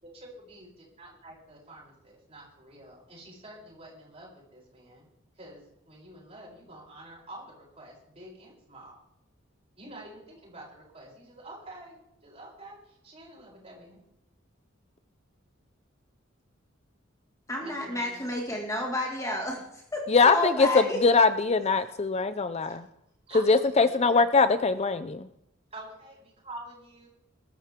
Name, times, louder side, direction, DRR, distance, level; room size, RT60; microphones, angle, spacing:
voice 1, 0.0-5.1 5.4-9.0 9.8-14.0 17.6-18.2 23.3-24.2 25.7-27.1, right 1 dB, 30° right, -4 dB, 7.6 m, -47 dB
voice 2, 17.5-21.0, left 1 dB, 15° left, 0 dB, 2.2 m, -31 dB
voice 3, 20.1-22.8 23.5-25.3, left 4 dB, 30° left, 12 dB, 0.5 m, -22 dB
20.5 x 13.0 x 3.7 m, 0.82 s
head